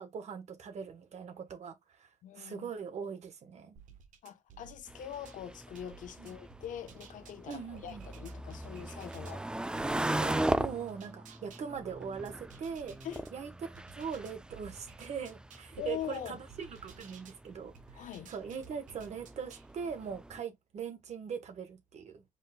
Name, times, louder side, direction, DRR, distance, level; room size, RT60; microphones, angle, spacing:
voice 1, 0.0-2.1 2.3-3.8 6.2-6.3 7.5-8.0 10.2-12.9 13.3-13.5 14.0-22.2, right 6 dB, 60° right, 1.3 m, -41 dB
voice 2, 2.2-2.7 4.2-9.5 13.0-13.3 15.8-16.4 17.9-18.3, left 10 dB, 85° left, 0.9 m, -43 dB
sound 1, 3.8-5.4 5.7-9.4 9.7-13.3 13.7-17.4 17.7-19.7, right 7 dB, 80° right, 1.1 m, -55 dB
sound 2, 4.9-20.4, right 1 dB, 5° right, 0.3 m, -39 dB
5.1 x 3.9 x 2.2 m
cardioid pair, 135°, 13 cm